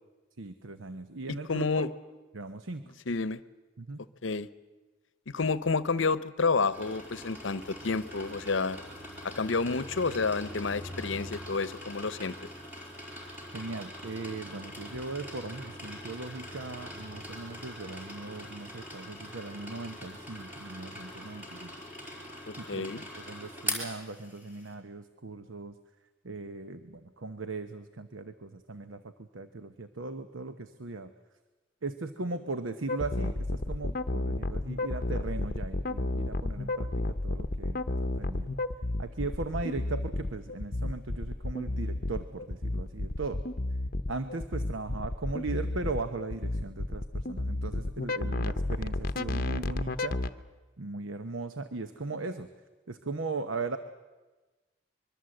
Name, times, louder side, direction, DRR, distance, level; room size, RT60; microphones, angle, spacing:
voice 1, 0.4-1.9 2.3-2.9 3.8-4.0 13.5-21.8 22.6-25.8 26.2-31.1 31.8-38.5 39.0-43.5 44.1-50.2 50.8-52.5 52.9-53.8, right 3 dB, 90° right, 9 dB, 1.0 m, -38 dB
voice 2, 1.3-1.9 3.1-3.4 4.2-4.5 5.3-8.8 9.2-12.4 22.5-23.0, left 4 dB, 80° left, 16 dB, 0.8 m, -30 dB
sound 1, 6.7-24.7, left 1 dB, 10° right, 4.8 m, -42 dB
sound 2, 32.9-50.3, left 2 dB, 50° left, 0.8 m, -32 dB
25.0 x 22.5 x 7.8 m, 1.2 s
head